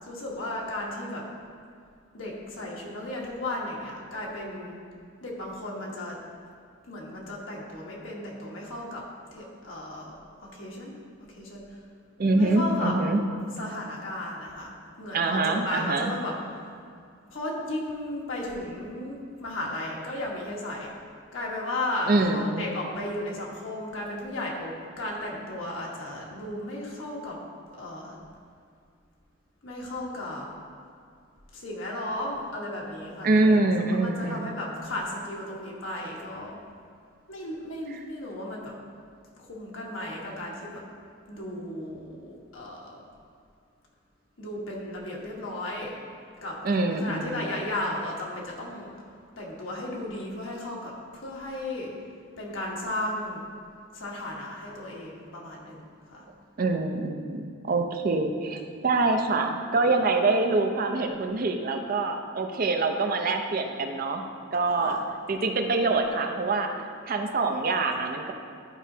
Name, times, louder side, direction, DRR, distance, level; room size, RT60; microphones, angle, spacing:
voice 1, 0.0-1.2 2.1-4.8 5.2-6.2 6.8-9.0 9.3-10.1 10.5-11.0 11.3-11.8 12.3-13.0 13.6-16.4 17.3-20.9 21.3-27.4 27.8-28.2 29.6-30.5 31.5-33.5 33.9-36.6 37.3-38.8 39.4-40.8 41.3-43.0 44.4-46.0 46.4-46.6 46.8-48.9 49.4-51.9 52.4-53.4 53.9-56.2 64.7-65.0, left 1 dB, 85° left, -3 dB, 1.3 m, -35 dB
voice 2, 12.2-13.2 15.1-16.1 22.1-22.7 33.2-34.5 46.6-47.4 56.6-64.2 64.5-65.0 65.3-66.7 67.1-68.3, right 3 dB, 50° right, 5 dB, 0.5 m, -25 dB
10.5 x 5.0 x 2.7 m, 2.3 s
head